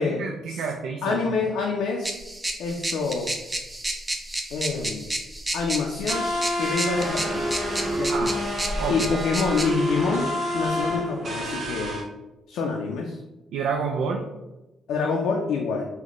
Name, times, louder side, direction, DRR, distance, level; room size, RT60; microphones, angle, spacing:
voice 1, 0.0-1.3 8.1-8.3 8.8-9.1 10.9-11.0 13.5-14.3, right 5 dB, 85° right, 2 dB, 0.3 m, -29 dB
voice 2, 1.0-2.2 2.6-3.3 4.5-5.1 5.5-6.3 6.6-7.4 7.9-8.1 8.9-12.0 12.5-13.2 14.9-15.8, left 4 dB, 85° left, 0 dB, 0.4 m, -26 dB
sound 1, 2.0-9.7, right 1 dB, 15° right, 0.5 m, -31 dB
sound 2, 6.1-12.0, equal, 50° right, 1.1 m, -28 dB
4.0 x 2.1 x 3.0 m, 1.0 s
cardioid pair, 90°, 0 cm